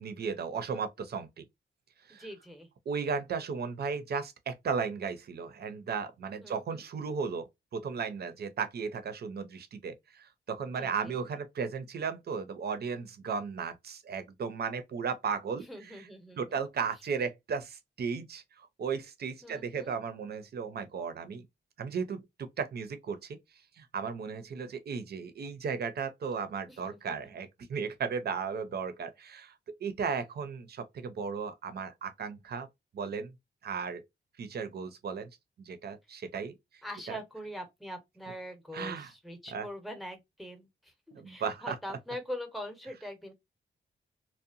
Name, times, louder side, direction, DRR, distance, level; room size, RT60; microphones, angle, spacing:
voice 1, 0.0-1.5 2.1-2.3 2.9-7.5 7.7-16.0 16.4-21.5 21.8-23.4 23.8-29.5 29.8-32.7 32.9-33.3 33.6-34.0 34.4-35.3 35.6-36.5 37.1-37.2 38.7-39.1 39.5-39.7 41.1-41.8, right 6 dB, 55° right, 0.6 m, -35 dB
voice 2, 2.1-2.7 6.4-6.8 10.8-11.2 15.5-16.6 19.4-19.9 26.7-27.3 36.8-43.3, equal, ahead, 0.8 m, -43 dB
2.7 x 2.1 x 2.5 m
wide cardioid pair, 125°, 19 cm